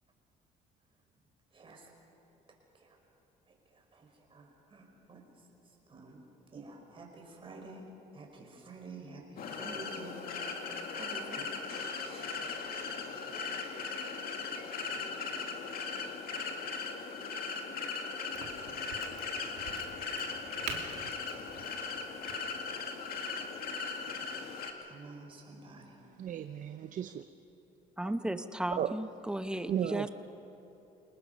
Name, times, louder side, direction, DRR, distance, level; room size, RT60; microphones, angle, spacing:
voice 1, 1.5-1.9 2.7-3.0 3.5-7.9 8.1-10.4 10.9-11.6 12.0-12.4 24.8-26.0, right 3 dB, 30° right, 1 dB, 5.1 m, -50 dB
sound 1, 9.4-24.7, left 4 dB, 60° left, 2.1 m, -38 dB
Crack, 18.3-23.8, right 7 dB, 80° right, 2.3 m, -47 dB
voice 2, 26.2-27.2 28.8-28.9 29.7-30.1, right 10 dB, 50° right, 9 dB, 0.7 m, -34 dB
voice 3, 28.0-30.1, right 1 dB, 5° right, 9 dB, 0.9 m, -35 dB
27.5 x 19.5 x 5.4 m, 2.9 s
cardioid pair, 110°, 17 cm